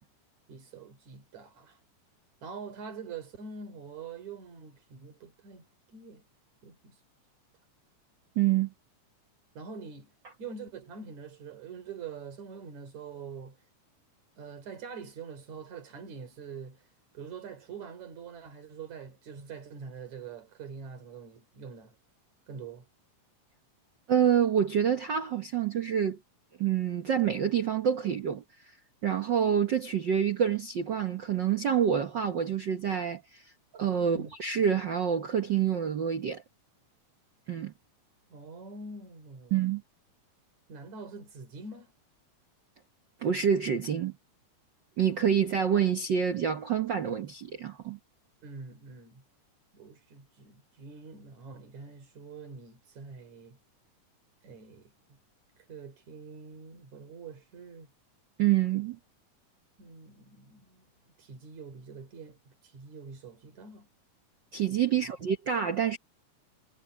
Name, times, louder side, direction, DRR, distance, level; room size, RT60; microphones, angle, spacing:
voice 1, 0.5-1.8 2.4-6.2 6.6-7.0 9.5-10.1 10.4-13.6 14.4-16.8 17.1-22.0 22.5-22.9 34.0-34.3 38.3-39.6 40.7-41.9 48.4-49.2 49.7-53.6 54.4-55.2 55.7-57.9 59.8-60.9 61.2-63.9 64.9-65.2, right 5 dB, 60° right, 4.7 m, -45 dB
voice 2, 8.4-8.7 24.1-26.2 26.6-28.4 29.0-33.4 33.7-36.4 37.5-37.7 39.5-39.8 43.2-44.1 45.0-48.0 58.4-59.0 64.5-66.0, right 8 dB, 80° right, 1.0 m, -27 dB
omnidirectional pair, 3.7 m